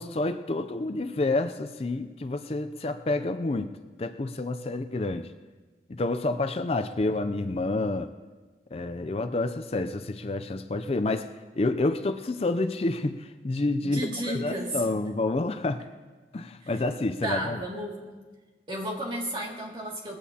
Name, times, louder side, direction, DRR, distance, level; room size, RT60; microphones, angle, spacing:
voice 1, 0.0-5.3 5.9-8.1 8.7-11.3 11.5-14.0 14.3-15.8 16.3-17.6, left 2 dB, 35° left, 9 dB, 0.4 m, -29 dB
voice 2, 13.8-14.8 16.6-16.7 17.2-18.0 18.7-20.2, right 1 dB, 30° right, -2 dB, 2.2 m, -32 dB
20.0 x 15.5 x 2.8 m, 1.3 s
head